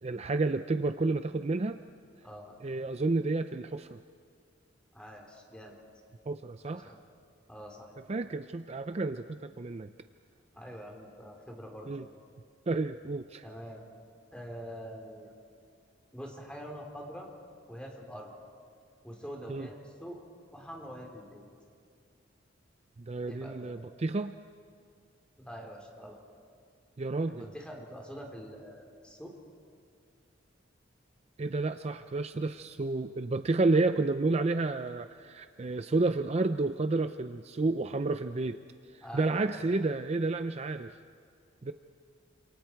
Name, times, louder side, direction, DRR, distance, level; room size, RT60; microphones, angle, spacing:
voice 1, 0.0-1.8 2.6-4.0 6.3-6.9 8.1-9.9 11.9-12.0 12.7-13.4 19.5-19.7 23.1-24.4 27.0-27.5 31.4-38.6 38.9-41.0 41.6-41.7, right 3 dB, 35° right, 9 dB, 0.5 m, -30 dB
voice 2, 2.2-2.5 4.9-5.8 6.6-7.0 7.5-7.9 10.5-11.9 13.4-13.9 14.3-15.3 16.1-17.3 17.7-18.3 19.0-20.2 20.5-21.4 23.3-23.7 25.4-26.2 27.3-29.4 39.0-39.6, equal, 5° left, 0 dB, 3.6 m, -45 dB
28.5 x 27.5 x 4.6 m, 2.2 s
head